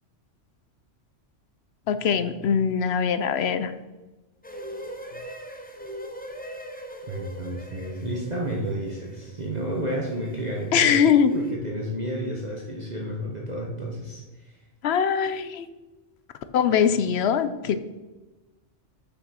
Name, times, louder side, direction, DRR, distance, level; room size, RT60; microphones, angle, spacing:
voice 1, 1.9-3.7 10.7-11.3 14.8-15.7 16.5-17.8, left 7 dB, 65° left, 11 dB, 0.8 m, -22 dB
sound 1, 4.4-11.5, equal, 10° left, 0.8 m, -41 dB
voice 2, 7.1-11.0 11.3-14.6, right 1 dB, 35° right, -2 dB, 1.2 m, -31 dB
6.3 x 6.2 x 6.2 m, 1.1 s
omnidirectional pair, 1.2 m